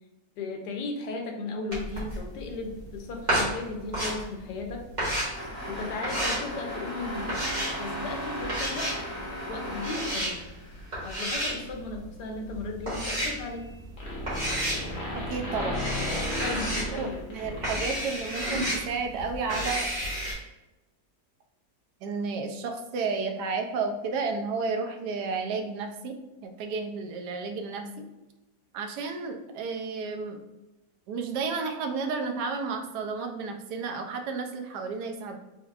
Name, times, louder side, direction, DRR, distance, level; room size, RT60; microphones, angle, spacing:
voice 1, 0.4-4.9 5.7-7.4 7.8-9.1 9.5-10.4 11.0-13.7 16.4-17.2, left 3 dB, 90° left, 3 dB, 1.3 m, -36 dB
sound 1, 1.7-20.3, equal, 25° right, 1.6 m, -32 dB
sound 2, 5.3-11.0, equal, 60° left, 1.7 m, -37 dB
sound 3, 13.5-13.7 14.0-18.4, left 1 dB, 35° left, 1.0 m, -34 dB
voice 2, 15.1-15.9 16.9-19.9 22.0-26.2 26.4-27.9 28.7-30.4 31.1-35.3, right 4 dB, 80° right, 4 dB, 1.1 m, -32 dB
4.3 x 3.5 x 2.3 m, 0.99 s
omnidirectional pair, 1.8 m